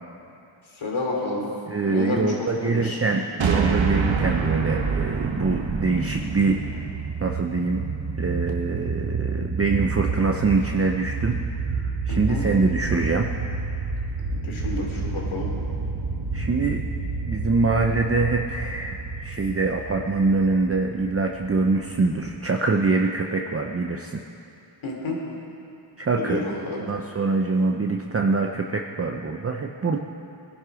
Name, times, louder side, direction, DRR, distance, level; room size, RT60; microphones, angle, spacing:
voice 1, 0.8-1.4 1.8-2.3 2.6-3.0 12.1-12.4 14.4-15.5 24.8-25.2 26.2-26.8, left 2 dB, 70° left, -2 dB, 3.4 m, -29 dB
voice 2, 1.7-6.9 7.2-7.8 8.2-11.4 11.8-13.3 16.3-16.8 17.2-24.2 26.0-26.4 26.8-30.0, right 3 dB, 30° right, 2 dB, 0.8 m, -24 dB
sound 1, 3.4-7.8, right 5 dB, 65° right, 1.4 m, -26 dB
sound 2, 5.6-22.6, right 4 dB, 85° right, 1.7 m, -30 dB
20.0 x 11.0 x 5.0 m, 2.7 s
cardioid pair, 85°, 49 cm